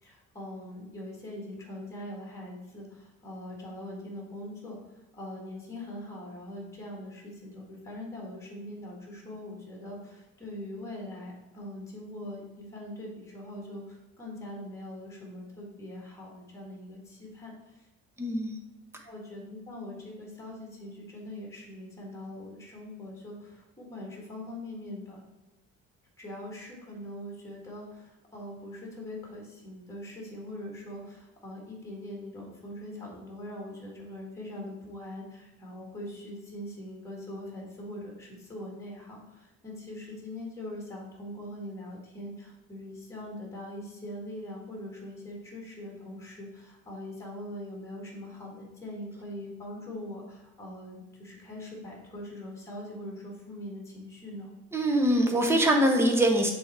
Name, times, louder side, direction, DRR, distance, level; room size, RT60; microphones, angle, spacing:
voice 1, 0.0-4.8 5.1-17.9 19.0-25.2 26.2-54.5, left 1 dB, 10° left, -2 dB, 1.7 m, -42 dB
voice 2, 18.2-18.6 54.7-56.5, right 1 dB, 10° right, 2 dB, 0.8 m, -23 dB
7.0 x 3.5 x 4.3 m, 1.1 s
cardioid pair, 155°, 29 cm